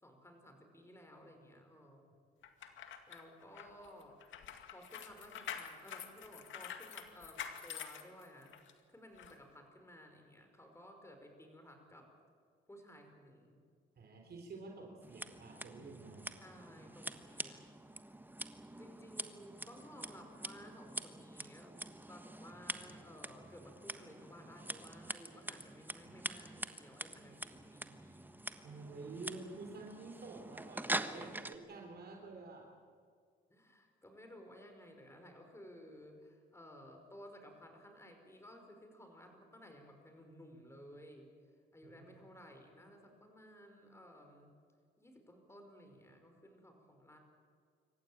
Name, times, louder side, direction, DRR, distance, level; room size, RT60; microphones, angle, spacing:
voice 1, 0.0-2.1 3.1-4.2 4.7-12.1 12.7-13.6 16.4-17.9 18.8-28.3 31.1-31.4 33.5-41.3 41.7-44.5 45.0-47.2, equal, 15° left, 4 dB, 5.3 m, -56 dB
sound 1, 2.4-8.7 9.2-9.3, left 8 dB, 75° left, 2.1 m, -47 dB
voice 2, 14.0-16.3 28.6-32.7 41.8-42.2, right 3 dB, 55° right, 2 dB, 3.7 m, -50 dB
Scissors, 15.0-31.6, right 1 dB, 10° right, 1.3 m, -45 dB
26.5 x 14.5 x 8.9 m, 2.1 s
cardioid pair, 90°, 20 cm